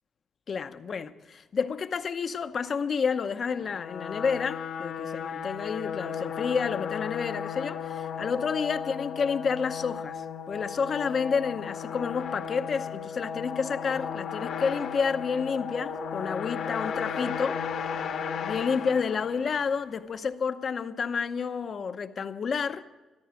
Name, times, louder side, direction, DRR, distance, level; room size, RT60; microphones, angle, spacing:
voice 1, 0.5-17.6 18.4-22.8, left 6 dB, 50° left, 0.8 m, -30 dB
sound 1, 3.5-19.8, left 7 dB, 70° left, 1.4 m, -35 dB
13.5 x 13.5 x 5.1 m
cardioid pair, 90°, 0 cm